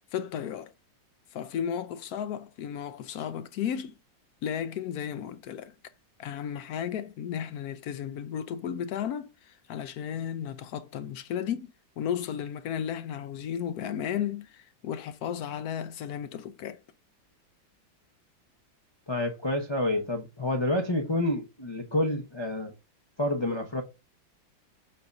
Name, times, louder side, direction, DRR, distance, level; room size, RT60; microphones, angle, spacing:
voice 1, 0.1-0.7 1.3-3.9 4.4-5.7 6.2-16.8, left 9 dB, 70° left, 0.9 m, -34 dB
voice 2, 19.1-22.7 23.2-23.8, left 1 dB, 35° left, 0.4 m, -28 dB
7.6 x 2.6 x 5.3 m
omnidirectional pair, 2.0 m